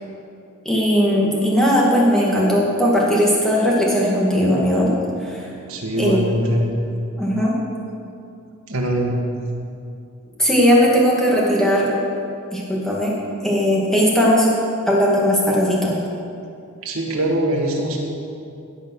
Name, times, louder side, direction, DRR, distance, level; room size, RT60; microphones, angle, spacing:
voice 1, 0.7-4.9 5.2-5.5 6.0-6.2 7.2-7.5 10.4-11.9 12.5-13.1 13.4-14.5 14.9-16.0, equal, ahead, -5 dB, 2.0 m, -18 dB
voice 2, 5.7-6.7 8.7-9.1 16.8-18.0, right 1 dB, 75° right, -1 dB, 1.9 m, -22 dB
16.0 x 5.5 x 6.4 m, 2.6 s
head